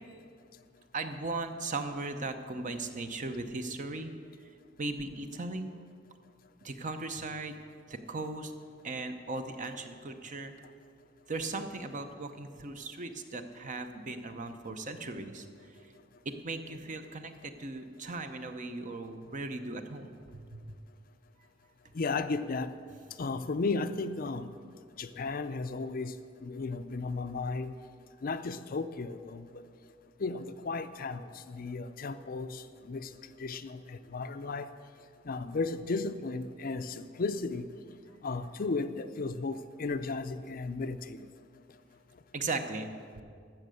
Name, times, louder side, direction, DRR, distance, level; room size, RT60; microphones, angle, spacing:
voice 1, 0.9-4.1 4.8-5.7 6.6-7.5 7.9-8.5 8.8-10.5 11.3-15.9 16.2-20.7 42.3-42.9, right 3 dB, 40° right, 8 dB, 0.8 m, -38 dB
voice 2, 22.0-22.7 23.2-24.5 25.0-26.1 26.4-27.7 28.2-29.6 30.2-32.6 32.9-33.1 33.4-34.7 35.3-37.7 38.2-41.2, left 3 dB, 50° left, 11 dB, 0.5 m, -34 dB
13.5 x 6.7 x 7.7 m, 2.2 s
head